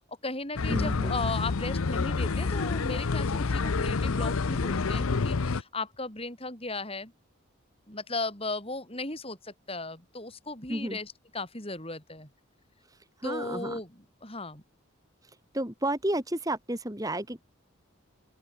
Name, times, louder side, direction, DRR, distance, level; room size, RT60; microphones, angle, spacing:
voice 1, 0.1-7.1 7.9-12.3 13.2-13.9 14.2-14.6, left 2 dB, 25° left, 7.5 m, -36 dB
sound 1, 0.6-5.6, left 4 dB, 75° left, 0.7 m, -28 dB
voice 2, 0.7-1.1 10.7-11.0 12.9-13.8 15.2-17.4, right 1 dB, 15° right, 2.2 m, -32 dB
open air
head